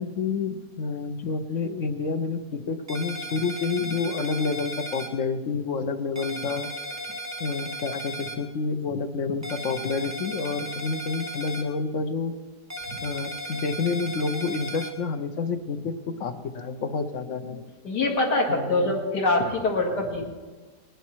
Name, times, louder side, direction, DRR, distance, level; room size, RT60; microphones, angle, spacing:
voice 1, 0.0-6.7 7.4-12.3 13.0-17.6 18.5-19.0, left 4 dB, 55° left, 8 dB, 1.0 m, -29 dB
sound 1, 2.9-5.1 6.2-8.4 9.4-11.6 12.7-14.9, equal, 10° right, 1.0 m, -35 dB
voice 2, 17.8-20.3, left 2 dB, 75° left, 0 dB, 2.7 m, -24 dB
19.5 x 10.5 x 4.6 m, 1.3 s
omnidirectional pair, 1.8 m